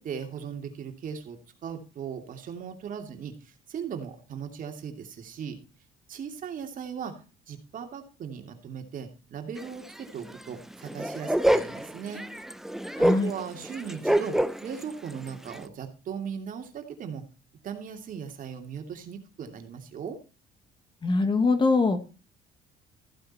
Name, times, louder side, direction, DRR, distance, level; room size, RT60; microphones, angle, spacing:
voice 1, 0.0-5.6 6.1-7.1 7.5-12.3 13.0-17.3 17.6-20.2, right 7 dB, 55° right, 5 dB, 2.7 m, -38 dB
sound 1, 9.6-9.7 10.0-10.1 10.3-10.4 10.7-14.8 15.1-15.6, right 1 dB, ahead, 0.8 m, -27 dB
voice 2, 13.0-13.3 21.0-22.0, left 3 dB, 30° left, 9 dB, 2.0 m, -23 dB
15.0 x 8.0 x 4.3 m, 0.33 s
cardioid pair, 110°, 17 cm